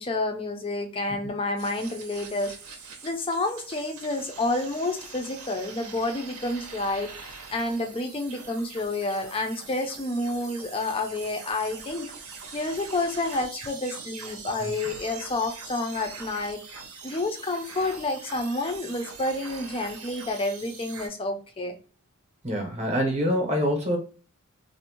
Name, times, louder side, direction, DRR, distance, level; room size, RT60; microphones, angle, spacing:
voice 1, 0.0-12.1 12.5-16.6 17.0-21.7, left 2 dB, 25° left, 0.4 m, -29 dB
sound 1, 1.6-21.1, right 5 dB, 75° right, 0.6 m, -43 dB
voice 2, 22.4-24.0, equal, 30° right, 0.7 m, -25 dB
2.6 x 2.0 x 2.8 m
head